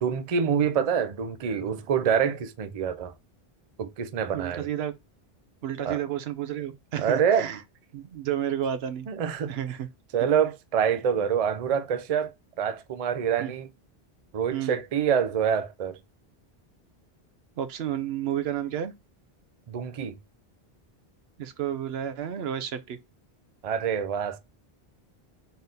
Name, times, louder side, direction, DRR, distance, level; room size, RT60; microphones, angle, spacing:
voice 1, 0.0-3.1 3.8-4.7 5.8-6.0 7.0-7.5 9.1-9.5 10.1-12.3 12.6-13.7 14.3-16.0 19.7-20.1 23.6-24.4, right 7 dB, 50° right, 0.5 m, -26 dB
voice 2, 4.3-4.9 5.6-7.6 7.9-9.1 9.5-9.9 13.4-13.5 14.5-14.7 17.6-18.9 21.4-23.0, right 10 dB, 80° right, 0.8 m, -31 dB
3.9 x 2.6 x 3.7 m
omnidirectional pair, 1.1 m